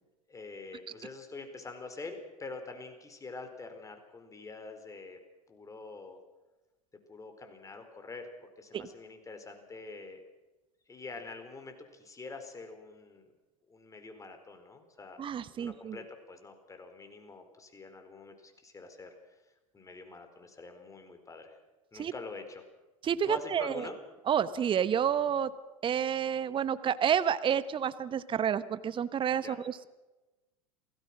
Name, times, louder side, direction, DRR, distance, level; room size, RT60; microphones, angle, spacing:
voice 1, 0.3-5.2 5.5-6.2 7.1-10.2 10.9-13.3 13.7-15.2 15.5-19.1 19.7-21.6 21.9-22.6 23.2-24.0 29.4-29.6, left 3 dB, 20° left, 6 dB, 4.5 m, -45 dB
voice 2, 15.2-16.0 22.0-22.1 23.0-23.9 24.3-25.5 25.8-29.9, right 8 dB, 30° right, 15 dB, 1.1 m, -29 dB
28.0 x 18.5 x 6.1 m, 1.1 s
hypercardioid pair, 85°, 18 cm